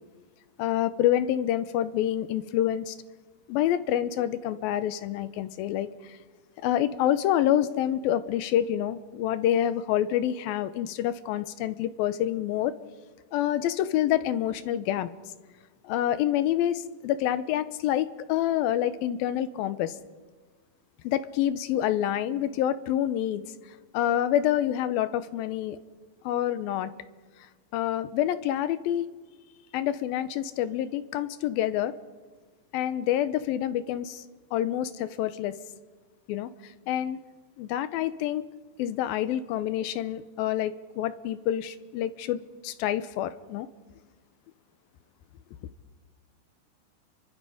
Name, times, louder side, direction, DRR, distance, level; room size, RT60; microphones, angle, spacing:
voice 1, 0.6-3.0 3.5-6.2 6.6-12.8 13.3-15.1 15.8-20.0 21.0-23.4 23.9-25.8 26.2-26.9 27.7-29.1 29.7-32.0 32.7-34.2 34.5-35.6 36.3-37.2 37.6-38.4 38.8-43.7, left 11 dB, 80° left, 13 dB, 2.6 m, -27 dB
29.5 x 24.0 x 5.0 m, 1.4 s
omnidirectional pair, 4.3 m